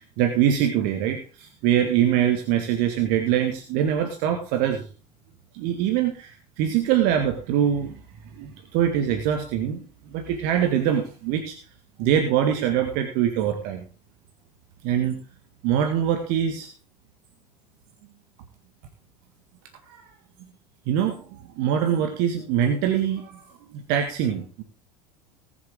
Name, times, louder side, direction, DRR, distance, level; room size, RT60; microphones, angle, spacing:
voice 1, 0.0-4.9 5.5-8.0 8.4-11.5 12.0-13.8 14.8-15.2 15.6-16.7 19.9-20.0 20.4-20.5 20.9-23.4 23.7-24.6, right 9 dB, 50° right, 5 dB, 1.8 m, -24 dB
19.5 x 7.2 x 3.8 m, 0.35 s
figure-of-eight pair, 70°, 20 cm